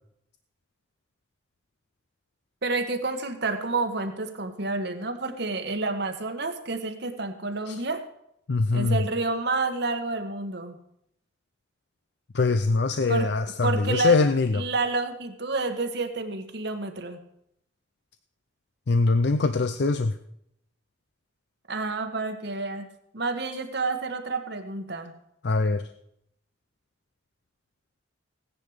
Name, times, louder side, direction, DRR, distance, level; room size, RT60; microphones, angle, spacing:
voice 1, 2.6-8.0 8.7-10.7 13.1-13.3 13.6-14.2 14.5-17.2 21.7-22.9 23.1-25.1, right 3 dB, 55° right, 7 dB, 1.3 m, -29 dB
voice 2, 8.5-9.0 12.3-14.7 18.9-20.1 25.4-25.8, left 3 dB, 55° left, 10 dB, 0.5 m, -23 dB
16.0 x 10.0 x 4.9 m, 0.76 s
head